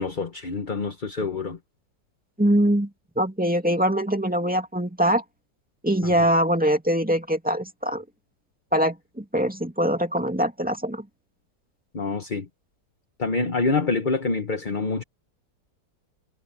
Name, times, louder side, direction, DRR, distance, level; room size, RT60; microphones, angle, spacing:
voice 1, 0.0-1.6 6.0-6.3 11.9-12.5 13.2-15.0, left 3 dB, 30° left, 1.1 m, -26 dB
voice 2, 2.4-2.9 3.2-5.2 5.8-8.0 8.7-11.0, equal, 5° right, 2.2 m, -23 dB
omnidirectional pair, 1.9 m